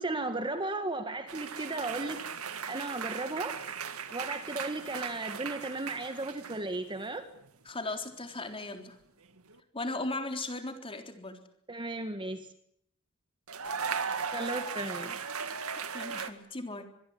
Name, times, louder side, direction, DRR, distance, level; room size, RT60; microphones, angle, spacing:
voice 1, 0.0-2.3 2.7-3.6 4.1-7.2 11.7-12.5 14.3-15.1, right 2 dB, 20° right, 8 dB, 1.7 m, -35 dB
sound 1, 1.3-6.8 7.0-7.5 9.4-9.6 13.5-16.3, right 6 dB, 85° right, 2.1 m, -37 dB
voice 2, 7.7-9.0 9.7-11.4 15.9-16.9, left 2 dB, 25° left, 5 dB, 3.7 m, -37 dB
25.5 x 21.5 x 8.7 m, 0.70 s
head